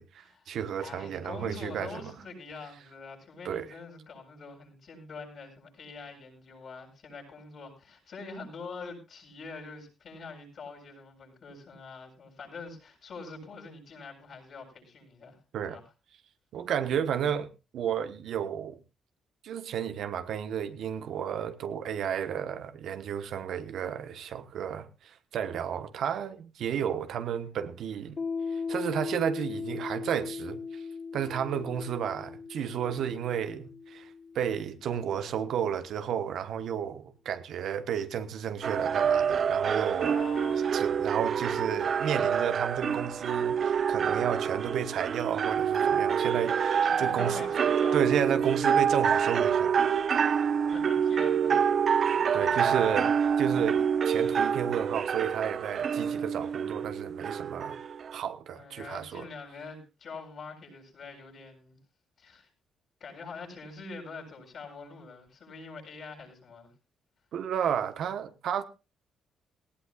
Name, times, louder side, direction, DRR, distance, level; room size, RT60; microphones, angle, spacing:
voice 1, 0.0-2.0 3.4-3.7 15.5-15.8 16.5-17.5 17.7-18.8 19.4-28.2 28.5-30.8 31.1-34.1 34.3-40.3 40.7-47.5 47.9-49.9 52.3-53.1 53.4-57.8 58.1-59.3 67.3-68.6, right 8 dB, 70° right, 1.2 m, -32 dB
voice 2, 0.8-15.4 15.6-15.8 40.0-40.7 46.8-48.0 50.6-51.7 52.3-53.0 58.5-61.8 62.2-62.5 63.0-66.7, left 4 dB, 55° left, 7.6 m, -44 dB
Piano, 28.2-35.4, left 5 dB, 40° left, 1.2 m, -38 dB
sound 1, 38.6-58.2, right 7 dB, 55° right, 0.7 m, -27 dB
18.5 x 17.5 x 2.4 m
cardioid pair, 90°, 0 cm